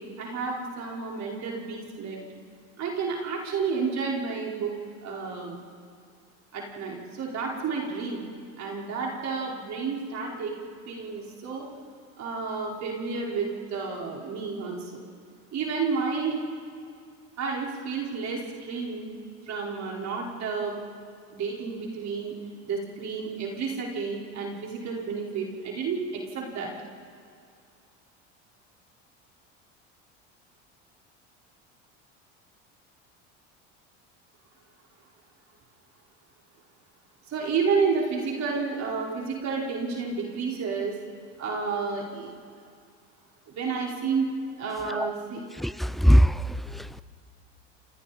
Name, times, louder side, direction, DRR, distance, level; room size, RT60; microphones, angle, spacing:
voice 1, 0.0-2.2 2.8-4.7 5.0-5.6 6.5-8.3 8.6-10.5 10.9-11.7 12.2-14.9 15.5-16.4 17.4-19.1 19.5-20.8 21.3-22.3 22.6-26.0 26.3-26.7 37.3-41.0 41.4-42.3 43.5-44.3 44.6-45.4, right 5 dB, 45° right, 4.8 m, -30 dB
voice 2, 45.6-47.0, equal, ahead, 0.5 m, -22 dB
28.5 x 27.5 x 4.3 m
hypercardioid pair, 85°, 37 cm